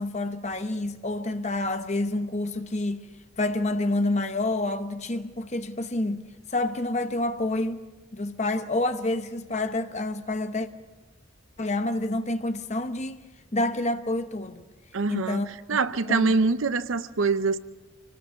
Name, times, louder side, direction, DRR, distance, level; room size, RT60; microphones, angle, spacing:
voice 1, 0.0-3.1 3.4-7.8 8.1-10.7 11.6-13.2 13.5-14.7 15.1-15.8 16.1-16.4, left 2 dB, 35° left, 1.0 m, -28 dB
voice 2, 14.9-15.4 15.7-17.6, right 4 dB, 80° right, 0.7 m, -24 dB
25.5 x 19.0 x 5.8 m
head